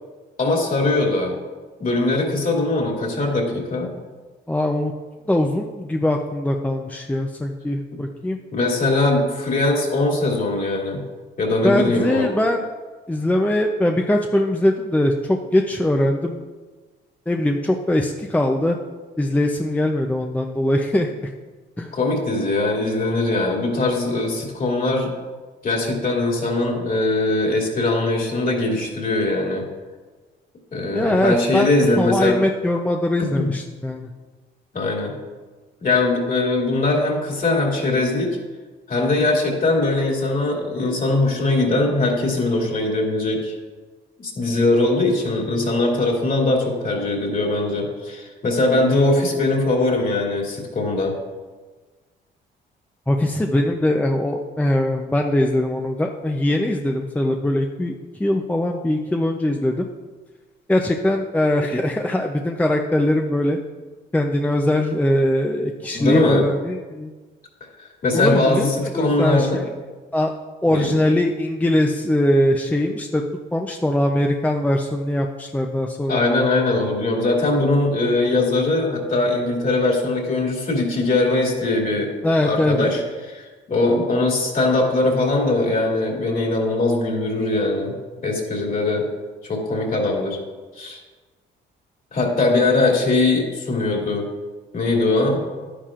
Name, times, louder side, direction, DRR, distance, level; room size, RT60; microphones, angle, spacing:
voice 1, 0.4-1.3 1.8-3.9 8.5-11.0 11.4-12.3 21.9-25.1 25.6-29.6 30.7-32.4 33.2-33.5 34.7-35.1 35.8-38.4 38.9-43.5 44.2-51.1 65.9-66.5 68.0-69.6 70.7-70.9 76.1-82.1 82.4-87.9 88.2-89.1 89.4-90.4 90.8-91.0 92.1-94.3 94.7-95.4, left 2 dB, 45° left, -1 dB, 2.7 m, -21 dB
voice 2, 4.5-4.9 5.3-8.4 11.6-12.6 13.1-16.4 17.3-18.8 19.2-21.3 21.8-21.9 30.9-31.7 32.0-34.1 53.1-59.9 60.7-63.6 64.1-67.1 68.1-68.7 68.9-69.6 70.1-70.3 70.6-73.2 73.5-76.2 82.2-82.8, left 1 dB, 10° left, 2 dB, 0.6 m, -21 dB
11.5 x 10.0 x 2.5 m, 1.3 s
cardioid pair, 90°, 20 cm